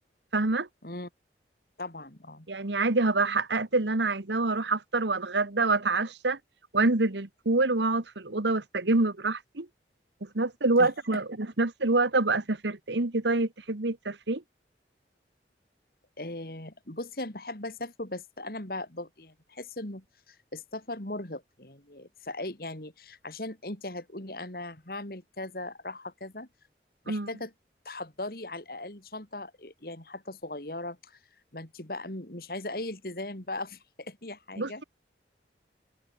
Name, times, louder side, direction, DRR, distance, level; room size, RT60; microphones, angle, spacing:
voice 1, 0.3-0.7 2.5-6.4 6.7-9.7 10.3-14.4 27.1-27.3 34.6-34.8, right 3 dB, 80° right, 1.5 m, -26 dB
voice 2, 1.8-2.5 10.8-11.2 16.2-26.5 27.0-27.5 27.8-31.2 31.5-34.8, left 2 dB, 55° left, 3.2 m, -38 dB
head